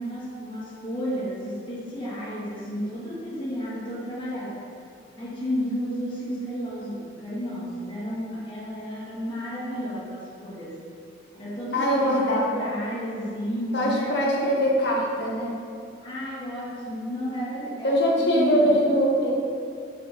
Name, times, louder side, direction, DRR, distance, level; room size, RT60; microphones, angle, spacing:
voice 1, 0.0-4.6 5.2-10.8 11.3-14.1 16.0-18.8, equal, 25° left, -8 dB, 1.7 m, -32 dB
voice 2, 11.7-12.6 13.7-15.5 17.8-19.3, equal, 65° left, -3 dB, 1.4 m, -22 dB
6.1 x 6.1 x 4.2 m, 2.4 s
head